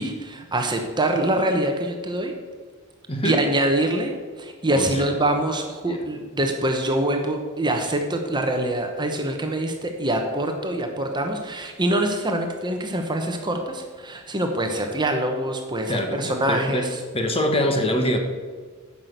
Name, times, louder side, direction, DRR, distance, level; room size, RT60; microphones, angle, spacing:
voice 1, 0.0-2.3 3.2-17.0, right 1 dB, 20° right, 4 dB, 1.0 m, -24 dB
voice 2, 3.1-3.4 4.8-5.1 5.8-6.0 15.9-16.9 17.1-18.2, left 1 dB, 25° left, 4 dB, 1.3 m, -24 dB
9.7 x 6.0 x 8.0 m, 1.5 s
head